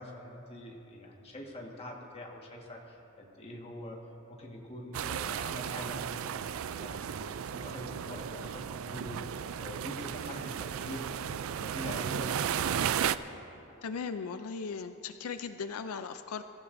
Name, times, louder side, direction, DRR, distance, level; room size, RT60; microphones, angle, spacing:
voice 1, 0.0-4.0 4.3-6.3 6.7-12.8, left 1 dB, 30° left, -1 dB, 1.6 m, -44 dB
sound 1, 4.9-13.2, right 8 dB, 70° right, 0.4 m, -34 dB
voice 2, 13.8-16.4, left 5 dB, 90° left, 9 dB, 0.5 m, -38 dB
23.0 x 14.5 x 2.7 m, 2.9 s
head